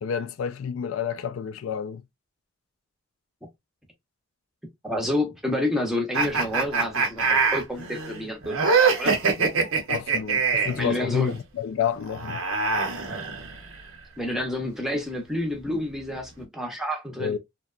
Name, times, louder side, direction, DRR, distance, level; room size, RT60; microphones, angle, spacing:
voice 1, 0.0-2.0 9.4-9.5 9.9-12.4 17.2-17.4, left 7 dB, 70° left, 0.3 m, -29 dB
voice 2, 4.8-9.2 10.8-11.3 14.2-17.3, left 1 dB, ahead, 0.6 m, -29 dB
sound 1, 6.1-10.8 12.0-13.7, right 4 dB, 75° right, 0.7 m, -24 dB
2.8 x 2.1 x 2.3 m
head